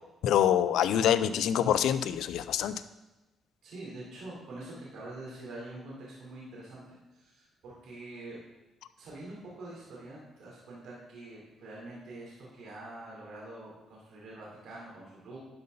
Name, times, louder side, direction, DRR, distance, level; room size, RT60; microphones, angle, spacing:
voice 1, 0.2-2.8, left 10 dB, 80° left, 13 dB, 0.5 m, -25 dB
voice 2, 3.6-8.4 9.0-15.4, right 2 dB, 75° right, -5 dB, 3.4 m, -45 dB
12.0 x 5.5 x 4.0 m, 1.0 s
cardioid pair, 90°, 0 cm